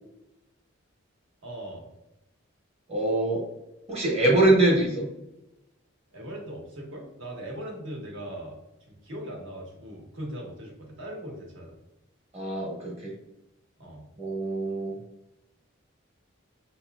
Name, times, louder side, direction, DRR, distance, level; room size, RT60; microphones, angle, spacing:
voice 1, 1.4-1.8 6.1-8.5 9.0-11.7 13.8-14.0, right 1 dB, 65° right, -1 dB, 1.2 m, -39 dB
voice 2, 2.9-3.5 3.9-5.1 12.3-13.1 14.2-14.9, right 2 dB, 30° right, -2 dB, 1.1 m, -24 dB
5.6 x 2.9 x 2.3 m, 0.91 s
head